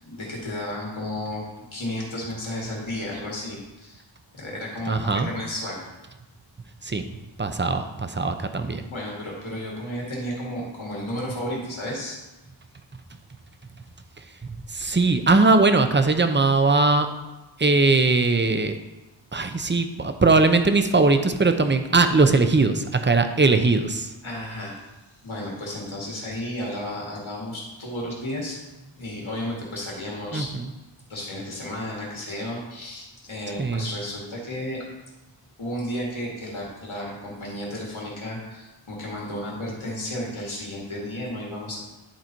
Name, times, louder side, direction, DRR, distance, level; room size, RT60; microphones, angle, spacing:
voice 1, 0.0-4.0 4.3-5.8 8.9-12.2 24.2-24.9 25.2-28.6 29.0-30.5 31.1-34.8 35.6-41.8, left 1 dB, 85° left, -3 dB, 2.0 m, -33 dB
voice 2, 4.9-5.3 6.8-7.0 7.4-8.8 14.2-17.1 17.6-18.8 19.3-24.1 30.3-30.7 33.6-33.9, right 3 dB, 25° right, 8 dB, 0.6 m, -20 dB
10.5 x 4.1 x 4.5 m, 1.1 s
wide cardioid pair, 55°, 47 cm